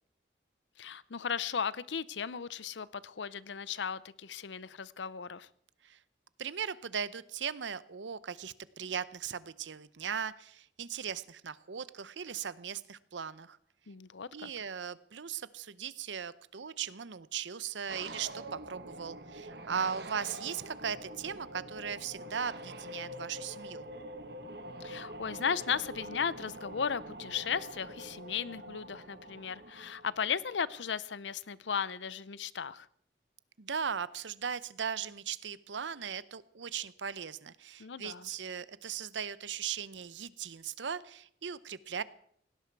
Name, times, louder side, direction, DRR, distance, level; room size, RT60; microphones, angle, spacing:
voice 1, 0.8-5.5 13.9-14.5 24.8-32.9 37.8-38.3, left 6 dB, 85° left, 19 dB, 0.6 m, -36 dB
voice 2, 6.4-13.6 14.3-23.9 33.6-42.0, right 7 dB, 85° right, 17 dB, 0.7 m, -38 dB
sound 1, 17.9-30.9, right 1 dB, 60° right, 1.4 m, -45 dB
18.0 x 17.0 x 4.7 m, 0.66 s
head